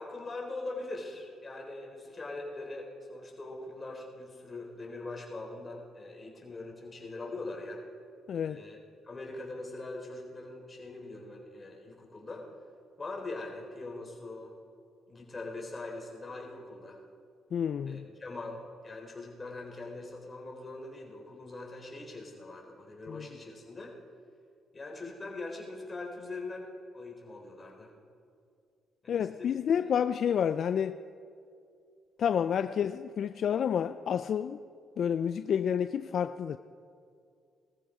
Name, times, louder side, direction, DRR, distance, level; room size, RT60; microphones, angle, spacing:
voice 1, 0.0-7.8 8.4-8.8 9.0-12.5 13.0-14.5 15.1-17.0 17.9-23.9 24.7-26.7 26.9-27.9 29.0-29.9 32.6-32.7, left 2 dB, 25° left, 0 dB, 3.7 m, -42 dB
voice 2, 8.3-8.6 17.5-18.1 23.1-23.3 29.1-31.0 32.2-34.6 35.0-36.6, left 8 dB, 60° left, 12 dB, 0.4 m, -29 dB
19.0 x 14.0 x 5.0 m, 2.4 s
cardioid pair, 90°, 0 cm